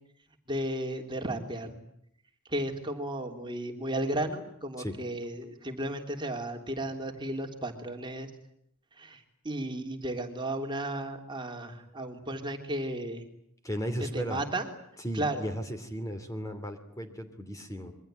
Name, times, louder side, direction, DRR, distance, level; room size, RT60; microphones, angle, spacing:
voice 1, 0.5-1.7 2.5-8.3 9.0-13.2 14.1-14.7 15.1-15.5, right 1 dB, 20° right, 4 dB, 3.3 m, -34 dB
voice 2, 13.6-14.4 15.0-17.9, equal, 15° left, 7 dB, 2.8 m, -35 dB
27.0 x 23.5 x 9.1 m, 0.72 s
head